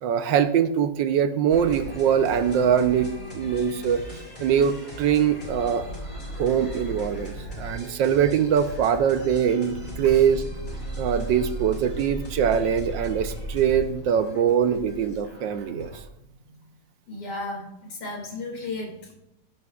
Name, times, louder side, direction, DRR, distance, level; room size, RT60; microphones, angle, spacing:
voice 1, 0.0-3.1 3.3-4.0 4.4-5.8 6.4-10.4 11.0-15.9, right 8 dB, 90° right, 9 dB, 1.5 m, -22 dB
sound 1, 1.5-16.0, right 1 dB, 25° left, 3.8 m, -37 dB
voice 2, 17.1-19.1, left 2 dB, 65° left, -1 dB, 3.1 m, -35 dB
19.5 x 11.0 x 2.4 m, 0.88 s
omnidirectional pair, 1.9 m